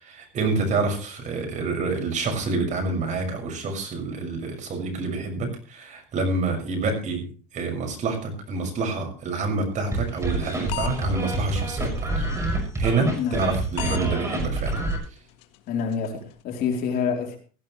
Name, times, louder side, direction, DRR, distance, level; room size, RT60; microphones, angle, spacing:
voice 1, 0.0-7.2 7.5-12.3 12.8-14.8, right 3 dB, 40° right, 6.2 m, -27 dB
sound 1, 9.9-15.0, right 2 dB, 15° right, 6.4 m, -27 dB
sound 2, 10.0-11.0 11.4-11.5 11.9-12.0 12.4-12.5 12.9-13.0 13.4-13.5 13.8-14.0 14.4-14.5 14.9-15.0 15.4-15.6 15.9-16.1, left 14 dB, 70° left, 1.7 m, -33 dB
voice 2, 15.7-17.4, left 6 dB, 50° left, 3.9 m, -27 dB
17.0 x 15.0 x 3.2 m
supercardioid pair, 130°, 19 cm